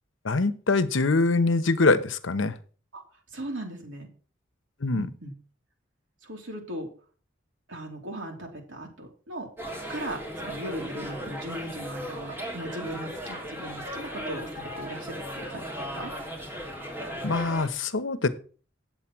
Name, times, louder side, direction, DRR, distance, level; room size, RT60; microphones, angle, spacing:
voice 1, 0.2-2.6 4.8-5.1 17.2-18.3, left 3 dB, 85° left, 12 dB, 0.9 m, -24 dB
voice 2, 3.3-4.1 4.9-5.3 6.2-6.9 7.7-9.5 9.9-16.1, right 1 dB, 75° right, 1 dB, 2.9 m, -38 dB
sound 1, 9.6-17.7, equal, 10° right, 3.0 m, -37 dB
8.8 x 7.8 x 6.1 m, 0.40 s
head